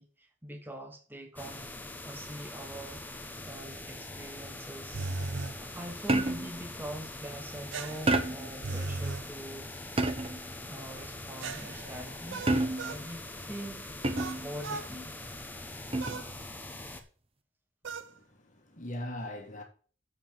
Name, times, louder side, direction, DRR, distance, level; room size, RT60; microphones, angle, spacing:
voice 1, 0.0-1.8 2.0-5.1 5.6-9.7 10.7-14.0 14.4-15.2, right 1 dB, 10° right, 1.4 m, -44 dB
sound 1, 1.4-17.0, left 2 dB, 10° left, 1.2 m, -43 dB
sound 2, 4.9-5.6 7.7-9.3 11.4-13.1 14.2-14.9 16.0-16.3 17.8-18.1, right 3 dB, 70° right, 0.6 m, -37 dB
sound 3, 6.1-6.6 8.1-8.6 10.0-10.5 12.5-13.0 14.0-14.5 15.9-16.3, right 2 dB, 30° right, 1.0 m, -29 dB
voice 2, 17.9-18.2 18.6-19.6, left 1 dB, 40° left, 1.9 m, -40 dB
7.5 x 5.8 x 7.5 m
head